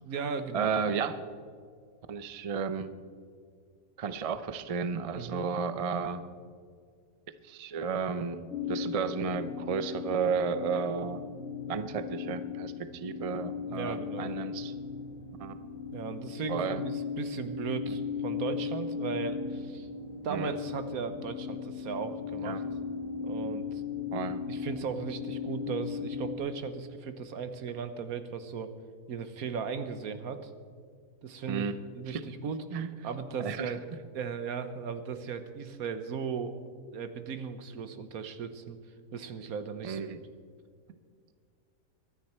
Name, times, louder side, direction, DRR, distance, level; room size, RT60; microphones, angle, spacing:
voice 1, 0.0-0.8 5.2-5.5 13.7-14.5 15.9-19.9 20.2-22.6 23.2-23.8 24.5-28.7 29.1-30.5 31.2-31.6 31.9-32.6 33.0-33.8 34.1-36.6 36.9-38.8 39.1-40.0, right 6 dB, 75° right, 10 dB, 1.4 m, -37 dB
voice 2, 0.5-1.2 2.1-2.9 4.0-6.2 7.4-11.2 11.7-14.7 15.4-15.5 16.5-16.8 20.3-20.5 22.4-22.6 24.1-24.4 31.5-31.8 32.1-32.2 32.7-32.9 33.4-33.7 39.8-40.2, right 6 dB, 45° right, 11 dB, 0.4 m, -33 dB
sound 1, 8.5-26.4, left 6 dB, 60° left, 2.1 m, -37 dB
23.5 x 9.8 x 4.4 m, 2.1 s
omnidirectional pair, 1.6 m